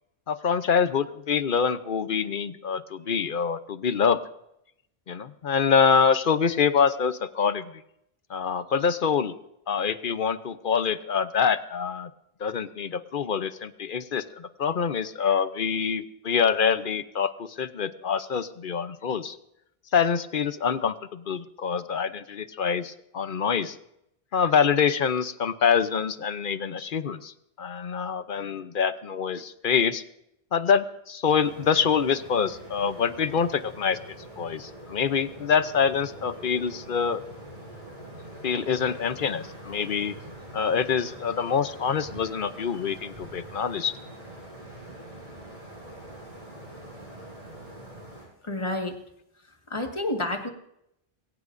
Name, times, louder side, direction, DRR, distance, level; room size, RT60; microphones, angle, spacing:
voice 1, 0.3-4.2 5.1-7.8 8.3-9.3 9.7-12.1 12.4-19.4 19.9-23.8 24.3-30.0 30.5-34.0 34.4-37.2 38.4-40.1 40.5-43.9, left 6 dB, 55° left, 12 dB, 0.9 m, -25 dB
sound 1, 31.3-48.2, right 1 dB, 40° right, 7.0 m, -44 dB
voice 2, 48.4-49.0 49.7-50.5, left 2 dB, 30° left, 4 dB, 1.7 m, -29 dB
21.0 x 18.0 x 2.6 m, 0.79 s
omnidirectional pair, 1.0 m